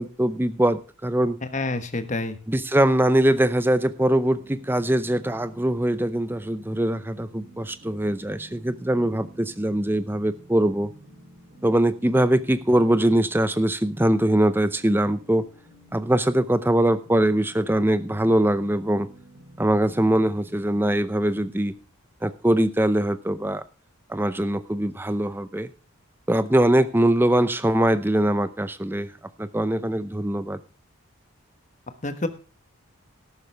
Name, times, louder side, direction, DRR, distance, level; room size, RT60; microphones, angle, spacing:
voice 1, 0.0-1.4 2.5-10.9 11.6-15.5 15.9-19.1 19.6-21.7 22.2-23.6 24.1-25.7 26.3-29.1 29.4-30.6, right 1 dB, 10° right, 14 dB, 0.6 m, -22 dB
voice 2, 1.5-2.4 32.0-32.3, left 2 dB, 35° left, 10 dB, 1.2 m, -27 dB
sound 1, 4.3-21.7, right 1 dB, 40° right, 7.3 m, -51 dB
13.5 x 12.0 x 3.4 m, 0.35 s
head